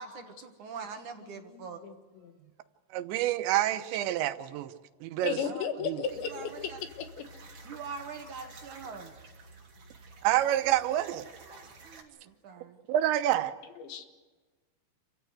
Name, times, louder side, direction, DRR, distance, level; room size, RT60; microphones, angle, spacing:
voice 1, 0.0-1.8 2.4-2.5 5.4-6.8 7.6-9.3 11.4-12.8, right 5 dB, 60° right, 5 dB, 2.4 m, -44 dB
voice 2, 1.2-2.3 5.2-7.3 8.2-8.3 13.8-14.1, left 7 dB, 85° left, 8 dB, 4.0 m, -36 dB
voice 3, 2.9-4.7 5.0-5.4 5.9-6.0 10.2-11.2 12.9-13.5, right 13 dB, 85° right, 11 dB, 3.3 m, -27 dB
sound 1, 6.1-12.0, right 3 dB, 35° right, 3.8 m, -51 dB
27.5 x 15.0 x 9.5 m, 1.3 s
omnidirectional pair, 5.0 m